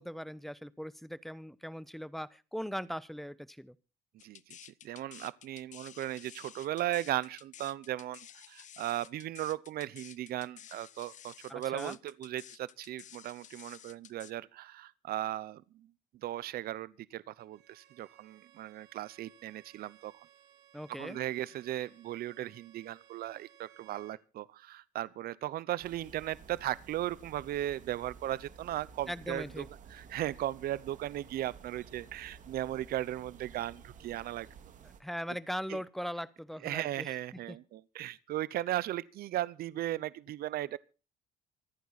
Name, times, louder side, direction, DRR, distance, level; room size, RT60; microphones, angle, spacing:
voice 1, 0.0-3.7 11.5-12.0 20.7-21.2 29.1-29.7 35.0-37.1 37.5-37.6, equal, ahead, 0.9 m, -40 dB
sound 1, 4.2-14.3, left 10 dB, 45° left, 0.6 m, -52 dB
voice 2, 4.2-4.6 4.8-15.9 16.2-20.1 21.0-34.5 35.7-35.8 36.6-40.8, right 13 dB, 65° right, 0.8 m, -37 dB
Bowed string instrument, 17.4-24.2, right 12 dB, 85° right, 3.3 m, -61 dB
sound 2, 25.8-35.0, right 6 dB, 50° right, 2.1 m, -53 dB
25.5 x 9.4 x 4.2 m
cardioid pair, 110°, 17 cm